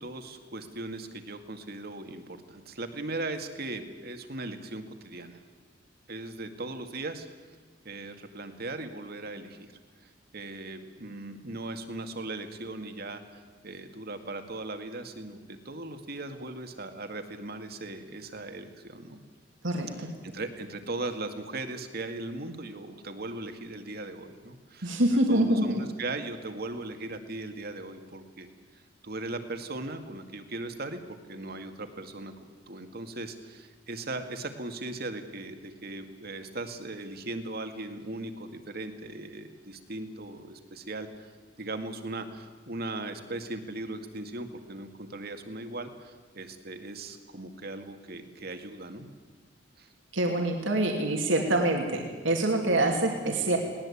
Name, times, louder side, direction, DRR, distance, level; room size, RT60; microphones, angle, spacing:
voice 1, 0.0-5.4 6.1-7.3 7.8-9.7 10.0-19.2 20.0-24.9 25.3-28.5 28.7-31.0 31.3-32.3 32.7-41.3 41.6-49.1 49.8-49.9, right 2 dB, 55° right, 7 dB, 2.2 m, -38 dB
voice 2, 19.6-20.1 24.8-25.8 50.1-53.6, right 1 dB, 75° right, 1 dB, 2.9 m, -25 dB
21.0 x 19.0 x 8.6 m, 1.4 s
head